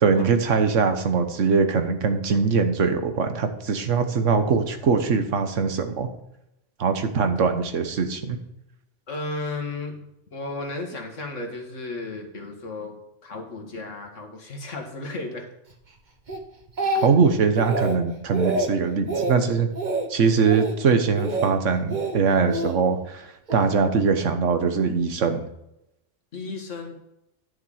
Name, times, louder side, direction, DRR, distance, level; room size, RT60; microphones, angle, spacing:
voice 1, 0.0-6.1 6.8-8.4 17.0-19.7 20.1-25.5, right 5 dB, 90° right, 8 dB, 1.4 m, -22 dB
voice 2, 9.1-10.0 10.3-12.9 13.2-15.5 16.8-17.0 26.3-27.0, left 2 dB, 85° left, 3 dB, 2.1 m, -34 dB
Speech, 16.3-17.3 17.6-18.0 18.3-18.7 19.1-19.4 19.8-20.1 20.4-20.8 21.2-21.5 21.9-22.7 23.5-23.7, right 2 dB, 40° right, 1.3 m, -26 dB
10.5 x 6.5 x 4.9 m, 0.84 s
omnidirectional pair, 1.2 m